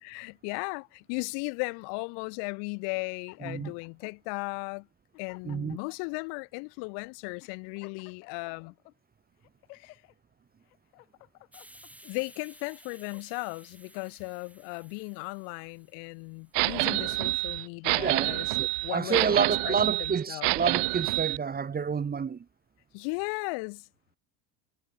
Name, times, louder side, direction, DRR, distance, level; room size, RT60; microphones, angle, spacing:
voice 1, 0.0-4.9 5.2-8.7 9.7-10.0 12.0-18.5 18.8-20.5 22.9-23.9, left 36 dB, 70° left, 1.7 m, -36 dB
sound 1, 2.9-4.2 4.8-4.9 5.1-6.2 6.8-6.9 7.4-8.9 9.4-10.1 10.6-11.9 12.5-13.5, left 20 dB, 85° left, 5.2 m, -55 dB
voice 2, 3.4-3.7 5.4-5.8 18.0-18.3 18.6-22.4, right 6 dB, 20° right, 1.2 m, -29 dB
Hiss, 11.5-16.9, right 1 dB, 5° right, 4.0 m, -56 dB
sound 2, 16.5-21.4, right 32 dB, 65° right, 1.2 m, -28 dB
supercardioid pair, 105°, 43 cm